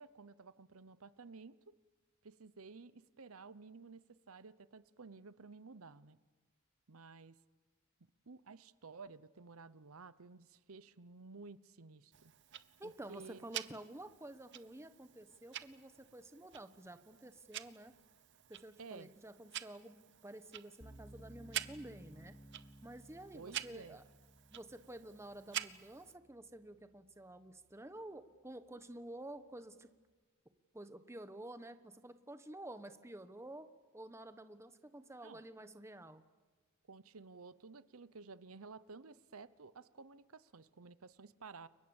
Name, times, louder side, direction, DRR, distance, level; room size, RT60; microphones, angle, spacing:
voice 1, 0.0-1.8 2.2-6.2 6.9-7.4 8.3-12.3 12.8-13.5 18.8-19.1 23.3-24.0 35.2-35.4 36.9-41.7, right 4 dB, 85° right, 15 dB, 0.9 m, -54 dB
Tick-tock, 12.1-26.1, right 12 dB, 55° right, 0.9 m, -49 dB
voice 2, 12.8-17.9 18.5-22.3 22.8-24.0 24.5-29.9 30.7-33.7 33.9-36.2, right 1 dB, 15° right, 10 dB, 1.1 m, -51 dB
sound 1, 20.8-27.9, equal, 15° left, 2.8 m, -59 dB
30.0 x 23.5 x 7.2 m, 1.3 s
head